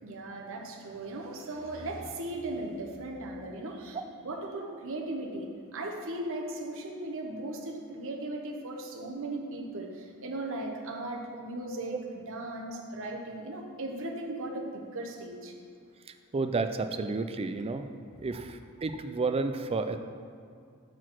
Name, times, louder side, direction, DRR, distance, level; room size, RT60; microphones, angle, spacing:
voice 1, 0.0-4.0 4.2-12.0 12.3-15.5, right 2 dB, 65° right, 1 dB, 0.9 m, -37 dB
voice 2, 16.1-17.9 18.2-20.0, right 3 dB, 25° right, 8 dB, 0.3 m, -31 dB
6.1 x 4.6 x 6.0 m, 2.3 s
head